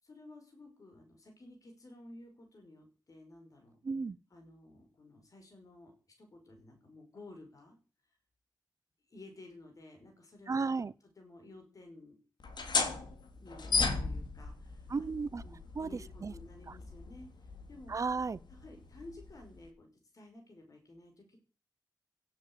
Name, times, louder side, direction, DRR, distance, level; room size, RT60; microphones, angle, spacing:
voice 1, 0.0-3.8 4.3-5.9 6.2-7.8 9.1-10.8 11.2-12.2 13.3-15.1 15.4-17.9 18.5-19.9 20.1-21.4, left 2 dB, 50° left, 5.6 m, -54 dB
voice 2, 3.8-4.2 10.5-10.9 14.9-15.4 15.7-16.3 16.7-16.8 17.9-18.4, right 4 dB, 45° right, 0.9 m, -34 dB
sound 1, 12.4-19.7, left 4 dB, 85° left, 3.1 m, -37 dB
17.0 x 9.1 x 8.2 m
wide cardioid pair, 150°, 7 cm